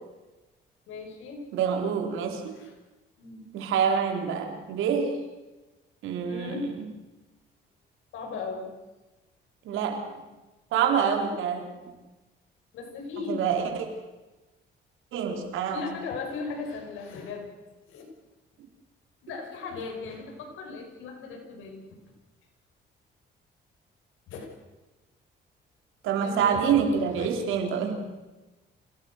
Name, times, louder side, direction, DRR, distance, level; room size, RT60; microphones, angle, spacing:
voice 1, 0.9-1.4 2.5-2.7 3.2-3.5 6.2-6.8 8.1-8.7 12.7-13.4 15.7-17.6 17.9-18.1 19.2-21.9 24.3-24.5 26.2-26.6 27.2-27.3, left 4 dB, 90° left, 2 dB, 6.6 m, -37 dB
voice 2, 1.5-2.5 3.5-5.2 6.0-6.5 9.6-10.0 10.7-11.9 13.3-13.9 15.1-15.8 26.0-28.0, right 7 dB, 90° right, 4 dB, 4.0 m, -26 dB
27.5 x 19.0 x 6.6 m, 1.1 s
cardioid pair, 90°, 20 cm